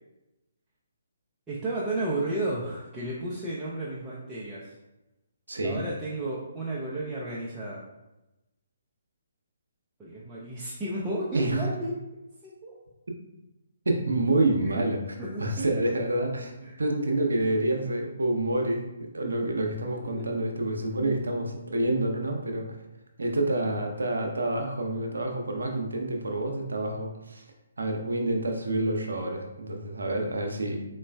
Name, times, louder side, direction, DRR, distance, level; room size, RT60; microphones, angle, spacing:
voice 1, 1.5-4.7 5.6-7.8 10.0-11.9 12.4-12.7 14.6-14.8 15.2-15.8 16.6-16.8 20.2-20.3 21.0-21.2, right 1 dB, 10° right, -8 dB, 0.5 m, -33 dB
voice 2, 5.5-5.8 11.3-11.7 13.9-15.0 15.4-16.5 16.8-18.9 19.1-22.7 23.2-27.4 27.8-30.9, right 1 dB, 70° right, 2 dB, 0.6 m, -28 dB
3.9 x 3.1 x 2.2 m, 0.98 s
figure-of-eight pair, 135°, 0 cm